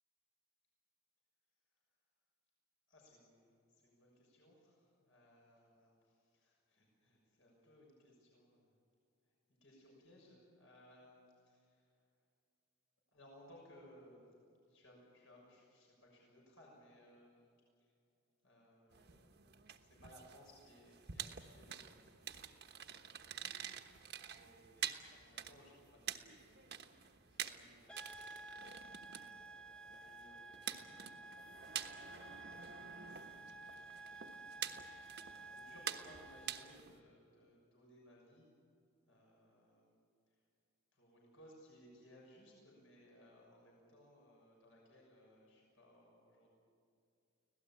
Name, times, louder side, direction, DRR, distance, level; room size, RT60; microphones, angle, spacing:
voice 1, 2.9-8.7 9.2-9.3 9.6-12.1 13.1-14.2 14.7-17.9 18.4-23.9 24.3-31.5 31.9-33.8 35.4-38.5 39.1-40.0 40.3-40.4 40.9-46.5, equal, 65° left, -2 dB, 6.5 m, -64 dB
sound 1, 18.9-37.0, right 8 dB, 50° right, 1.2 m, -48 dB
sound 2, 27.9-36.8, right 3 dB, 5° left, 0.6 m, -53 dB
25.5 x 17.5 x 8.8 m, 2.4 s
head